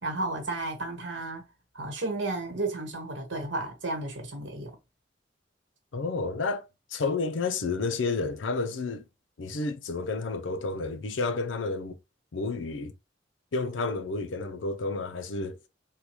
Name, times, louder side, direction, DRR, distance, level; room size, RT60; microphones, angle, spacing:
voice 1, 0.0-1.5 1.7-4.7, right 2 dB, 80° right, 1.2 m, -33 dB
voice 2, 5.9-9.0 9.4-12.0 12.3-12.9 13.5-15.6, left 3 dB, 85° left, 0.5 m, -31 dB
3.8 x 2.2 x 3.0 m
head